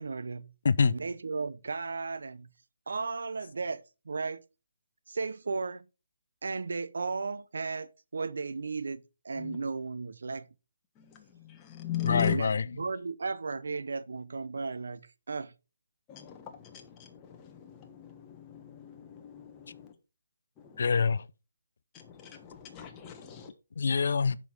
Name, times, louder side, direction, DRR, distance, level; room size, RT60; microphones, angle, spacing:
voice 1, 0.0-0.5 0.8-2.5 2.9-4.4 5.1-5.8 6.4-10.5 12.2-15.5, right 4 dB, 75° right, 0.7 m, -35 dB
voice 2, 11.0-12.3 16.1-19.9 20.6-20.8 21.9-23.5, left 10 dB, 15° left, 1.3 m, -39 dB
voice 3, 12.0-12.8 20.8-21.3 23.8-24.4, left 5 dB, 60° left, 0.4 m, -25 dB
7.1 x 6.0 x 4.7 m
hypercardioid pair, 160°, 0 cm